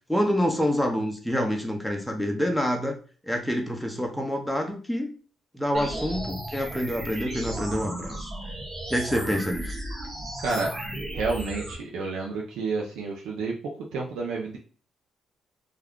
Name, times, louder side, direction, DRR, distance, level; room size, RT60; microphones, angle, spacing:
voice 1, 0.1-3.0 3.3-5.1 5.5-8.3 8.9-9.8, equal, ahead, 2 dB, 0.6 m, -27 dB
sound 1, 5.7-11.7, right 1 dB, 35° right, 1.0 m, -35 dB
voice 2, 10.4-10.7 11.1-13.5 13.9-14.6, right 3 dB, 90° right, -2 dB, 0.5 m, -30 dB
2.3 x 2.2 x 3.5 m, 0.40 s
cardioid pair, 90°, 0 cm